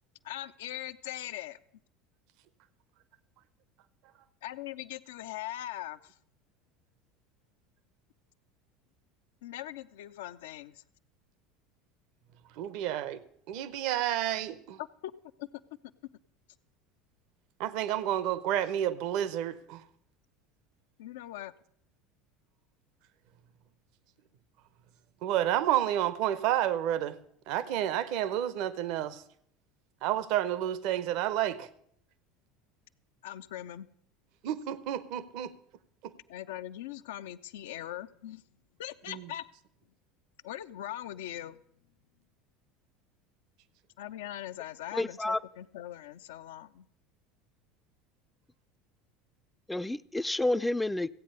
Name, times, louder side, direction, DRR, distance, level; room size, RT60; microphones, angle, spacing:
voice 1, 0.2-1.6 4.4-6.1 9.4-10.8 14.8-15.1 15.4-15.5 21.0-21.5 33.2-33.9 36.3-38.4 38.8-39.5 40.4-41.6 44.0-46.9, left 13 dB, 70° left, 12 dB, 0.4 m, -41 dB
voice 2, 12.5-13.2 13.5-14.8 17.6-19.8 25.2-27.2 27.5-29.2 30.0-31.7 34.4-35.5 36.0-36.1 39.1-39.3, right 11 dB, 60° right, 16 dB, 0.7 m, -30 dB
voice 3, 44.9-45.4 49.7-51.1, left 2 dB, 10° left, 15 dB, 0.4 m, -29 dB
15.5 x 8.6 x 5.4 m, 0.69 s
figure-of-eight pair, 75°, 0 cm